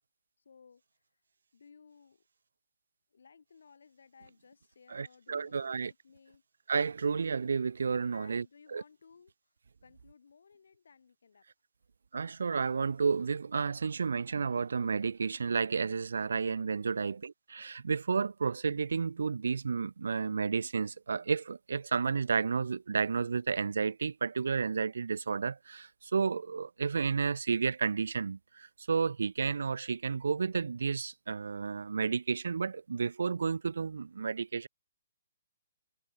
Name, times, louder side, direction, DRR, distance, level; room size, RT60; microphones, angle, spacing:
voice 1, 0.4-1.2 1.5-2.2 3.1-6.4 8.1-9.5 9.8-11.5 16.9-17.2, left 5 dB, 75° left, 5.7 m, -59 dB
voice 2, 4.9-5.9 6.7-8.4 8.7-8.8 12.1-34.7, right 5 dB, 80° right, 0.4 m, -31 dB
hypercardioid pair, 170°, 0 cm